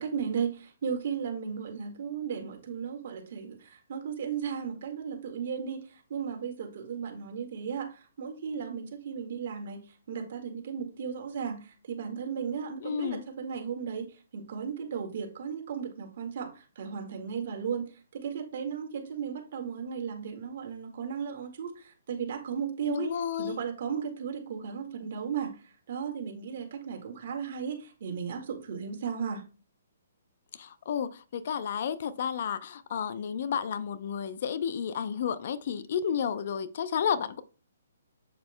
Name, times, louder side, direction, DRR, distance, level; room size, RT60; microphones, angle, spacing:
voice 1, 0.0-23.1 23.4-29.4, right 7 dB, 55° right, 4 dB, 1.9 m, -35 dB
voice 2, 12.8-13.2 22.9-23.6 30.5-37.4, left 8 dB, 55° left, 13 dB, 0.6 m, -31 dB
7.6 x 6.9 x 2.2 m, 0.34 s
hypercardioid pair, 135°, 0 cm